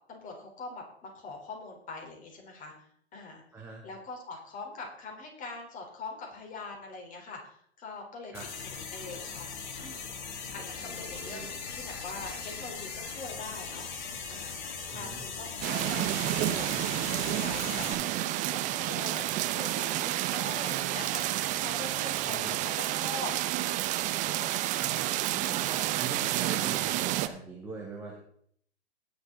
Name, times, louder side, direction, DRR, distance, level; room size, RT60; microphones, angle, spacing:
voice 1, 0.1-2.7 3.1-3.4 3.8-8.3 8.6-9.5 9.8-10.0 10.5-13.9 14.3-16.7 17.1-23.9 24.9-25.1, left 3 dB, 25° left, 1 dB, 3.8 m, -43 dB
voice 2, 3.5-3.8 8.3-8.5 10.8-11.5 14.9-15.2 22.2-22.7 24.8-28.2, right 4 dB, 5° right, -4 dB, 2.4 m, -43 dB
sound 1, 8.3-17.9, left 5 dB, 45° left, 2.7 m, -39 dB
sound 2, 15.6-27.3, right 15 dB, 25° right, 0.6 m, -30 dB
19.0 x 6.9 x 3.8 m, 0.62 s
figure-of-eight pair, 110°, 32 cm